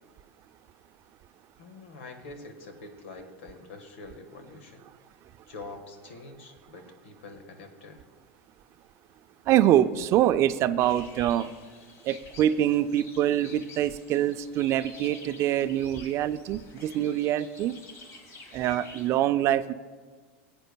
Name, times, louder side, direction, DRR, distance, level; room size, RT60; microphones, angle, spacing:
voice 1, 1.6-4.8 5.5-8.0, left 3 dB, 80° left, 6 dB, 1.6 m, -45 dB
voice 2, 9.5-11.5 12.0-17.7 18.5-19.7, right 12 dB, 45° right, 13 dB, 0.4 m, -25 dB
sound 1, 10.8-19.1, left 3 dB, 45° left, 1.7 m, -49 dB
19.0 x 8.9 x 2.3 m, 1.5 s
hypercardioid pair, 100°, 7 cm